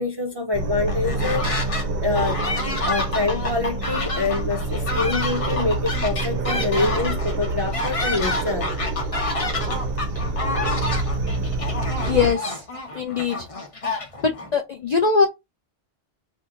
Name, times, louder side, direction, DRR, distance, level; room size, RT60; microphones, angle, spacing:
voice 1, 0.0-2.4 2.9-8.7, left 3 dB, 40° right, 0.4 m, -26 dB
sound 1, 0.5-12.3, right 2 dB, 60° right, 0.7 m, -27 dB
sound 2, 0.9-1.9 2.1-14.5, left 2 dB, 35° left, 0.7 m, -29 dB
voice 2, 12.0-12.6 12.9-13.5 14.2-15.3, left 5 dB, 60° left, 0.4 m, -21 dB
2.7 x 2.5 x 3.6 m
omnidirectional pair, 1.2 m